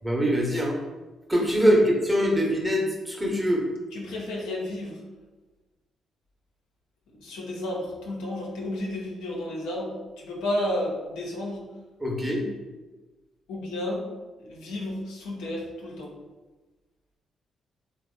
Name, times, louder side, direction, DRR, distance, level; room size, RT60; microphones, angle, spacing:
voice 1, 0.0-0.8 1.3-3.6 12.0-12.5, equal, 15° right, -1 dB, 1.0 m, -23 dB
voice 2, 3.9-5.0 7.1-11.6 13.5-14.0 14.4-16.1, left 1 dB, 80° left, -3 dB, 0.6 m, -32 dB
3.3 x 2.0 x 3.7 m, 1.2 s
hypercardioid pair, 45°, 0 cm